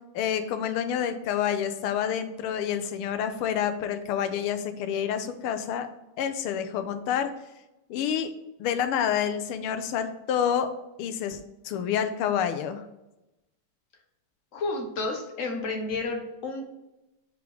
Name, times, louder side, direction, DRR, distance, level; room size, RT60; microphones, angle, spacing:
voice 1, 0.1-5.9 6.2-7.3 7.9-8.3 8.6-10.7 11.0-12.8, left 8 dB, 85° left, 9 dB, 1.6 m, -28 dB
voice 2, 14.5-16.6, left 3 dB, 50° left, 3 dB, 1.0 m, -31 dB
5.1 x 5.0 x 4.7 m, 0.96 s
omnidirectional pair, 2.4 m